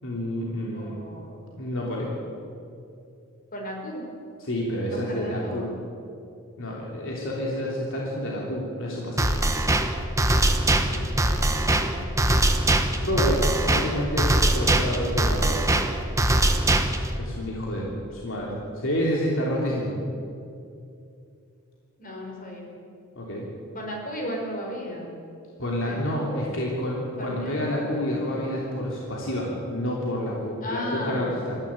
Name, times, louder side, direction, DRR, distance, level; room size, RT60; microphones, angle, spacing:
voice 1, 0.0-0.9 1.6-2.1 4.4-5.7 6.6-9.3 13.0-15.8 17.2-19.9 23.1-23.5 25.6-31.6, equal, 65° left, -3 dB, 3.3 m, -29 dB
voice 2, 0.7-1.5 3.5-4.0 5.1-5.7 10.7-12.2 22.0-22.7 23.7-25.1 25.9-26.5 27.2-27.6 27.9-28.3 30.6-31.3, equal, 40° left, 0 dB, 5.0 m, -35 dB
sound 1, 9.2-17.2, right 1 dB, 15° right, 1.2 m, -22 dB
21.0 x 14.5 x 8.9 m, 2.6 s
head